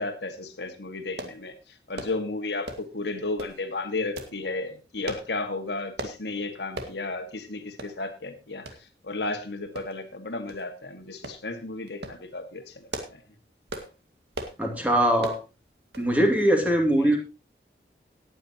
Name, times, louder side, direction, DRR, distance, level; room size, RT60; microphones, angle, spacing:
voice 1, 0.0-13.2 17.0-17.2, left 3 dB, 80° left, 6 dB, 1.8 m, -34 dB
sound 1, 1.2-1.4 2.0-2.2 2.7-2.9 3.4-3.6 4.2-4.4 5.1-5.3 6.0-6.2 6.8-7.0 7.3-7.4 7.8-7.9 8.7-8.8 9.8-10.1 10.5-10.6 11.2-11.4 11.9-12.2 12.7-13.2 13.7-13.9 14.3-14.6 15.2-15.4 15.9-16.1 16.4-16.5, right 1 dB, 75° right, 2.0 m, -37 dB
voice 2, 14.6-15.4 16.0-17.2, right 1 dB, 10° right, 2 dB, 2.4 m, -21 dB
18.0 x 9.1 x 2.9 m, 0.29 s
head